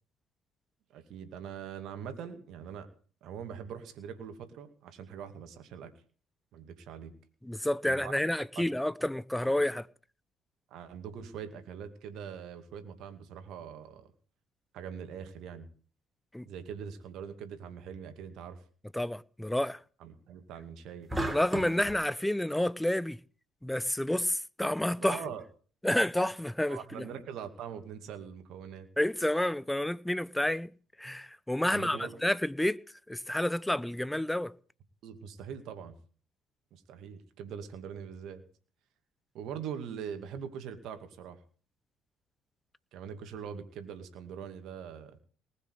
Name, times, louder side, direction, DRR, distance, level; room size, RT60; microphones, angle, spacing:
voice 1, 0.9-2.9 3.2-5.9 6.5-7.1 7.9-8.1 8.6-8.7 9.4-9.5 10.7-14.1 14.7-15.7 16.4-18.6 20.0-21.1 25.0-25.4 26.7-28.9 31.7-32.2 35.0-36.0 36.7-38.4 39.3-41.4 42.9-45.2, right 7 dB, 65° right, 2.3 m, -42 dB
voice 2, 7.4-9.9 16.3-16.5 18.9-19.8 21.3-23.2 23.6-25.2 25.8-27.1 29.0-30.7 31.0-32.8 33.1-34.5, left 1 dB, 5° left, 0.8 m, -29 dB
sound 1, 21.1-22.0, right 1 dB, 10° right, 3.7 m, -33 dB
19.5 x 6.9 x 8.2 m
hypercardioid pair, 55°, 0 cm